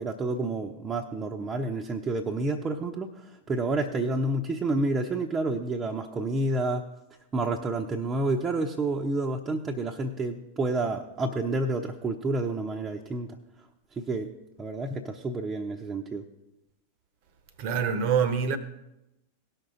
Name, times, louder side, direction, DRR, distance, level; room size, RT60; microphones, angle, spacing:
voice 1, 0.0-6.8 7.3-13.4 14.0-14.3 14.6-16.2, right 2 dB, 20° right, 0.9 m, -29 dB
voice 2, 17.6-18.6, right 7 dB, 45° right, 1.1 m, -25 dB
18.5 x 6.4 x 3.9 m
figure-of-eight pair, 90°, 0 cm